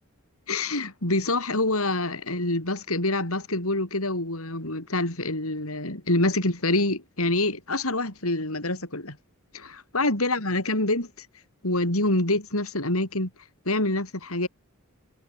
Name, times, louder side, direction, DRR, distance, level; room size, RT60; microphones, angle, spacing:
voice 1, 0.5-9.2 9.5-11.3 11.6-13.3 13.7-14.5, left 2 dB, 70° left, 6.2 m, -26 dB
head